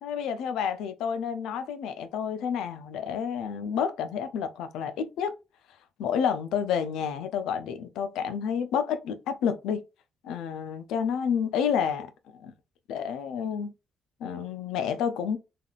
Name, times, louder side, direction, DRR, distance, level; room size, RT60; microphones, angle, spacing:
voice 1, 0.0-5.3 6.0-9.8 10.2-12.5 12.9-13.7 14.2-15.4, left 7 dB, 90° left, 0.4 m, -29 dB
3.4 x 2.3 x 2.3 m
cardioid pair, 90°, 0 cm